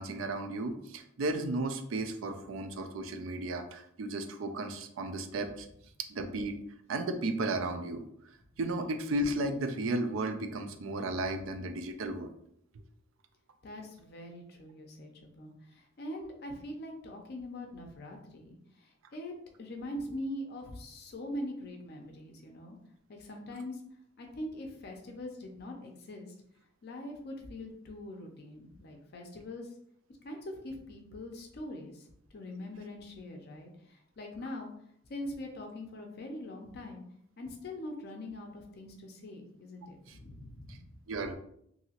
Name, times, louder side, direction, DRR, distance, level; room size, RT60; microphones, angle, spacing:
voice 1, 0.0-5.7 6.1-6.6 6.9-8.0 8.6-12.3 40.7-40.8 41.1-41.4, right 2 dB, 75° right, 7 dB, 0.4 m, -34 dB
voice 2, 13.6-19.3 19.6-22.8 23.1-23.8 24.2-26.3 26.8-29.7 30.2-32.1 32.3-34.7 35.1-37.0 37.4-40.9, left 1 dB, 50° left, 2 dB, 0.5 m, -43 dB
2.8 x 2.6 x 2.8 m, 0.71 s
head